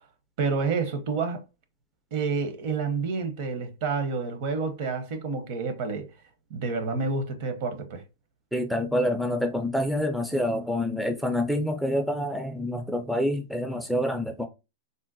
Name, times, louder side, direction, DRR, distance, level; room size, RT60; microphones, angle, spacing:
voice 1, 0.4-1.4 2.1-6.1 6.5-8.0, right 4 dB, 50° right, 0.7 m, -29 dB
voice 2, 8.5-14.5, left 1 dB, ahead, 0.3 m, -27 dB
3.7 x 2.1 x 2.5 m
hypercardioid pair, 140°, 0 cm